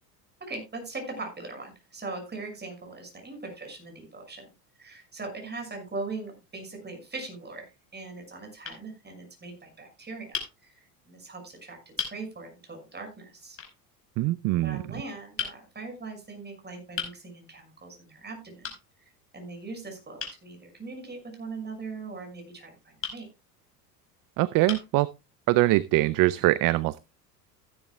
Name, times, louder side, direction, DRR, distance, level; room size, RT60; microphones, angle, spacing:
voice 1, 0.4-4.5 4.8-13.6 14.6-18.7 19.0-23.3, right 3 dB, 20° right, 4 dB, 6.2 m, -40 dB
sound 1, 6.9-7.5 8.2-8.3 8.6-8.8 10.3-10.5 11.4-11.5 12.0-12.2 13.6-13.8 15.4-15.6 17.0-17.2 18.6-18.8 20.2-20.4 23.0-23.2 24.0-24.1 24.7-25.0, left 6 dB, 25° left, 4.8 m, -35 dB
voice 2, 14.2-14.8 24.4-25.1 25.5-27.0, right 18 dB, 45° right, 20 dB, 0.6 m, -23 dB
15.5 x 11.0 x 2.3 m, 0.25 s
hypercardioid pair, 80°, 48 cm